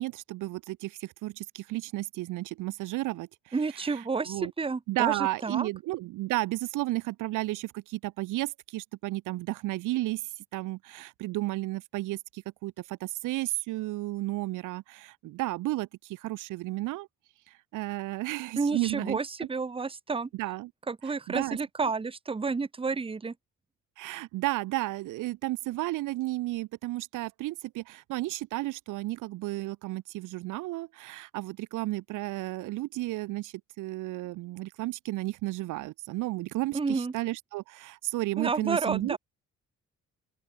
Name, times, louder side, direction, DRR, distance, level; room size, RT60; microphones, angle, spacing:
voice 1, 0.0-3.5 3.9-4.5 4.9-17.1 17.7-19.5 20.3-20.7 21.3-21.6 24.0-39.2, right 18 dB, 85° right, 0.7 m, -33 dB
voice 2, 3.5-5.7 18.6-20.3 20.9-23.3 36.7-37.1 38.4-39.2, right 4 dB, 20° right, 0.9 m, -30 dB
open air
cardioid pair, 90°, 30 cm